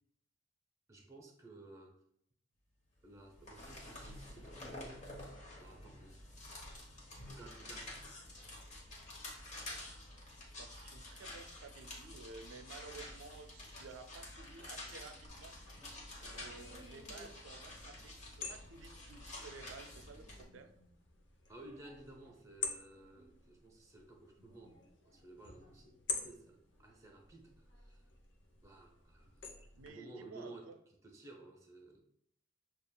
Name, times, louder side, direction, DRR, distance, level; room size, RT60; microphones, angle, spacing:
voice 1, 0.9-2.0 3.0-5.0 5.6-6.2 7.3-7.9 21.5-28.1 28.6-29.5 29.8-30.7 31.0-32.0, right 2 dB, 15° right, 0 dB, 0.7 m, -55 dB
sound 1, 3.1-20.4, left 1 dB, 40° left, 1.0 m, -50 dB
voice 2, 10.6-15.5 16.2-20.7 29.8-30.8, right 4 dB, 85° right, 7 dB, 0.4 m, -53 dB
sound 2, 15.3-29.9, left 5 dB, 65° left, 0.7 m, -49 dB
6.8 x 2.3 x 2.2 m, 0.71 s
head